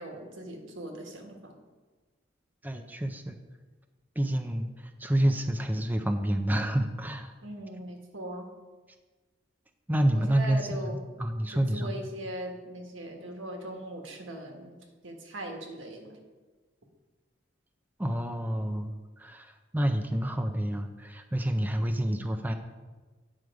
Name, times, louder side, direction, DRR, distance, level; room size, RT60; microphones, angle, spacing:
voice 1, 0.0-1.6 7.4-8.5 10.1-11.1 11.5-14.8 15.0-16.2, right 1 dB, 85° right, 2 dB, 1.5 m, -40 dB
voice 2, 2.6-3.4 4.2-4.7 5.0-7.3 9.9-11.9 18.0-22.5, right 1 dB, 10° right, 6 dB, 0.5 m, -28 dB
9.3 x 6.4 x 4.8 m, 1.3 s
head